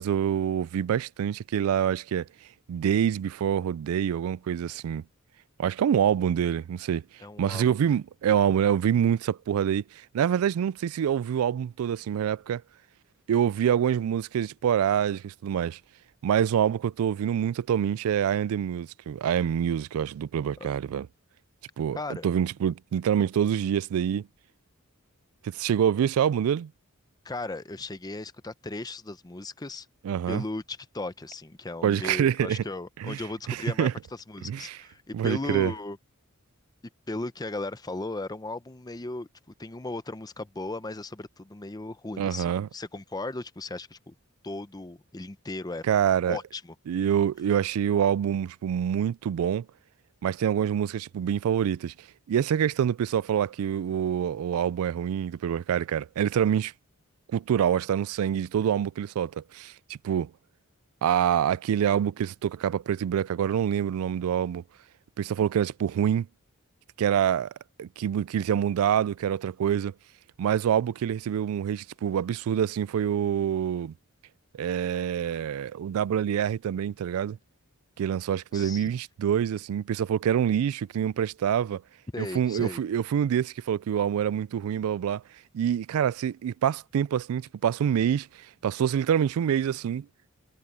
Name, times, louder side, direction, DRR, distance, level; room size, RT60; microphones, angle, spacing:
voice 1, 0.0-2.3 2.7-5.0 5.6-7.0 7.4-9.8 10.1-12.6 13.3-15.8 16.2-21.1 21.8-22.0 22.2-24.3 25.5-26.7 30.0-30.4 31.8-32.6 33.0-33.2 33.5-33.9 34.4-34.8 35.1-35.7 42.2-42.7 45.9-46.4 46.9-49.7 50.2-51.9 52.3-56.7 57.3-60.3 61.0-64.6 65.2-66.3 67.0-67.5 67.8-69.9 70.4-73.9 74.6-77.4 78.0-81.8 82.2-85.2 85.5-88.3 88.6-90.1, right 9 dB, 85° right, 0.3 m, -26 dB
voice 2, 7.2-7.8 20.6-20.7 22.0-22.3 27.2-29.9 30.3-36.0 37.1-39.3 39.6-44.1 44.4-45.8 46.3-46.7 78.5-78.9 82.1-82.8, left 2 dB, 20° left, 0.7 m, -36 dB
head